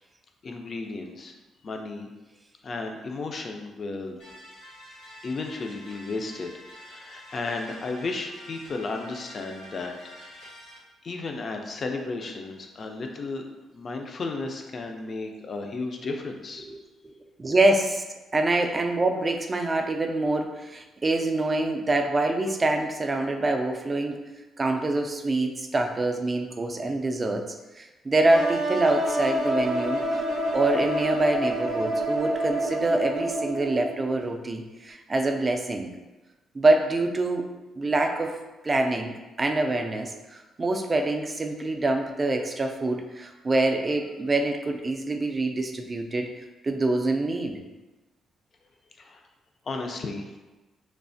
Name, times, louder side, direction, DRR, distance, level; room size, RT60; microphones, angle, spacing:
voice 1, 0.4-1.3 1.6-2.1 2.6-4.2 5.2-10.5 11.0-13.4 13.7-16.6 49.0-49.2 49.6-50.3, left 3 dB, 45° left, 3 dB, 0.4 m, -34 dB
sound 1, 4.2-10.8, equal, 85° left, 1.2 m, -47 dB
voice 2, 17.4-18.0 18.3-24.2 24.6-30.2 30.5-35.9 36.5-38.4 38.6-46.3 46.6-47.6, right 2 dB, 30° right, 4 dB, 0.3 m, -25 dB
sound 2, 28.3-34.1, right 1 dB, 90° right, 0.5 m, -28 dB
3.1 x 2.0 x 2.6 m, 1.1 s
cardioid pair, 90°, 0 cm